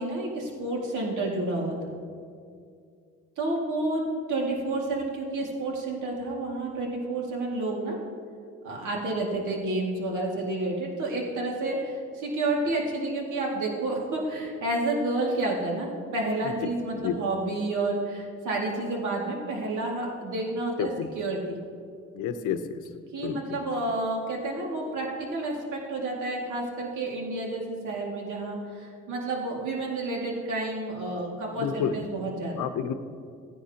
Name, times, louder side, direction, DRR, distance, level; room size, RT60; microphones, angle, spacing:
voice 1, 0.0-1.9 3.4-4.0 4.3-8.0 8.6-21.6 23.1-25.1 25.3-32.6, right 2 dB, 80° right, -2 dB, 2.2 m, -30 dB
voice 2, 16.4-17.2 20.8-21.1 22.1-22.8 23.2-23.6 31.6-32.1 32.5-32.9, left 8 dB, 85° left, 10 dB, 0.8 m, -30 dB
17.0 x 10.0 x 2.9 m, 2.3 s
cardioid pair, 90°, 30 cm